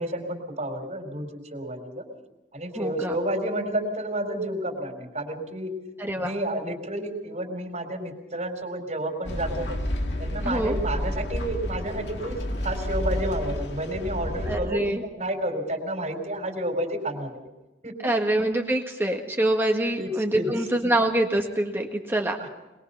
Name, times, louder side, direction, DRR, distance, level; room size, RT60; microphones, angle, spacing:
voice 1, 0.0-2.0 2.5-5.7 6.2-9.8 10.2-12.4 12.6-17.3 17.8-17.9 20.0-20.5 22.4-22.5, right 1 dB, 45° right, 4 dB, 4.3 m, -30 dB
voice 2, 2.7-3.2 6.0-6.3 10.4-10.8 14.5-15.0 18.0-22.5, right 1 dB, 15° right, 2 dB, 1.7 m, -25 dB
sound 1, 9.2-14.6, left 1 dB, 80° left, 2.2 m, -30 dB
22.5 x 21.5 x 5.8 m, 1.0 s
head